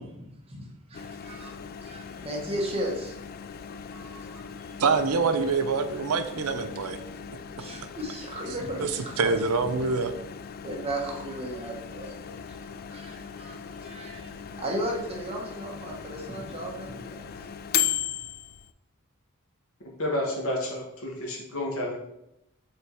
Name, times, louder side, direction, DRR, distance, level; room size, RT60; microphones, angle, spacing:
voice 1, 0.0-3.1 3.7-4.7 7.6-9.4 9.8-9.9 10.6-12.6 12.9-14.3 14.6-17.3 17.7-17.9, right 1 dB, 25° right, -1 dB, 1.2 m, -36 dB
Microwave oven, 0.9-18.7, left 9 dB, 45° left, 0.3 m, -37 dB
voice 2, 4.8-7.0 8.8-8.9 9.2-10.1, right 4 dB, 90° right, 9 dB, 0.6 m, -25 dB
voice 3, 20.0-22.0, left 1 dB, 70° left, 0 dB, 1.5 m, -30 dB
5.9 x 3.9 x 4.7 m, 0.83 s
head